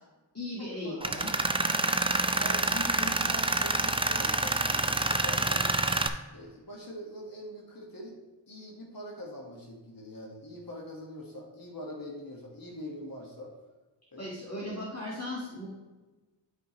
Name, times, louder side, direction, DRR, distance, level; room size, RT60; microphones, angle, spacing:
voice 1, 0.3-1.3 14.2-15.7, left 1 dB, 35° left, -6 dB, 1.7 m, -37 dB
Tools, 1.0-6.1, right 2 dB, 15° right, 0.5 m, -27 dB
voice 2, 2.4-5.7 6.3-8.2 8.5-13.5 14.1-14.4, equal, 50° left, -2 dB, 1.6 m, -43 dB
11.0 x 5.1 x 3.1 m, 1.2 s
wide cardioid pair, 65°, 44 cm